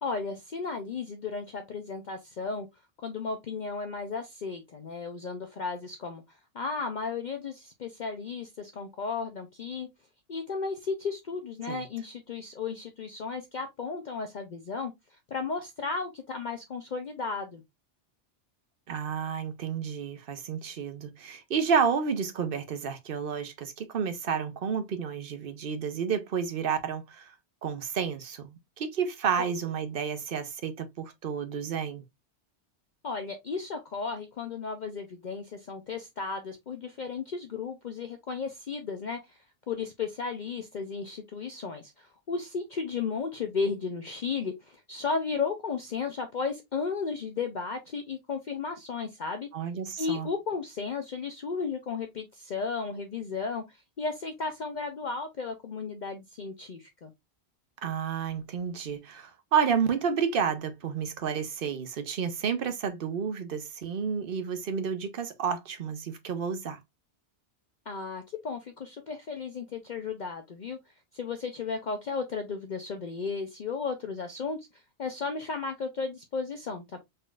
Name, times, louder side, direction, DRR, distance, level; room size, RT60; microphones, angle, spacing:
voice 1, 0.0-2.7 3.0-6.2 6.5-9.9 10.3-14.9 15.3-17.6 29.4-29.5 33.0-39.4 39.7-49.5 50.0-57.1 67.9-70.8 71.1-77.0, left 5 dB, 50° left, 0.7 m, -34 dB
voice 2, 18.9-27.3 27.6-32.0 49.5-50.3 57.8-66.8, right 7 dB, 55° right, 0.9 m, -30 dB
4.0 x 3.8 x 2.3 m
omnidirectional pair, 1.1 m